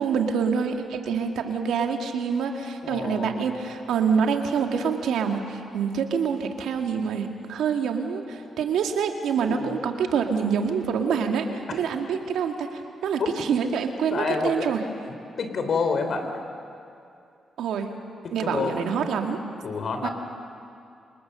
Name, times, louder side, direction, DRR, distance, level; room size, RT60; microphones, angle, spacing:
voice 1, 0.0-14.8 17.6-17.9 18.3-19.4 20.0-20.1, right 6 dB, 80° right, 4 dB, 1.9 m, -26 dB
voice 2, 2.8-3.4 9.5-9.7 13.2-13.3 14.1-14.7 15.4-16.3 18.2-18.7 19.6-20.1, left 4 dB, 65° left, 6 dB, 3.3 m, -28 dB
25.5 x 21.5 x 6.7 m, 2.6 s
supercardioid pair, 55°, 0 cm